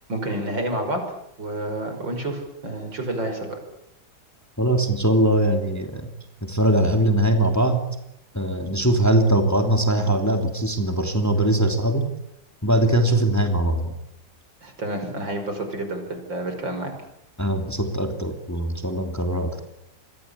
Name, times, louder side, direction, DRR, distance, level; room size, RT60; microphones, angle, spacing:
voice 1, 0.1-1.0 1.4-3.6 14.6-16.9, right 1 dB, 80° right, 6 dB, 6.2 m, -29 dB
voice 2, 4.6-6.1 6.4-7.8 8.3-12.1 12.6-13.9 17.4-19.6, right 1 dB, 10° left, 5 dB, 3.0 m, -21 dB
27.5 x 22.0 x 8.6 m, 0.79 s
omnidirectional pair, 2.0 m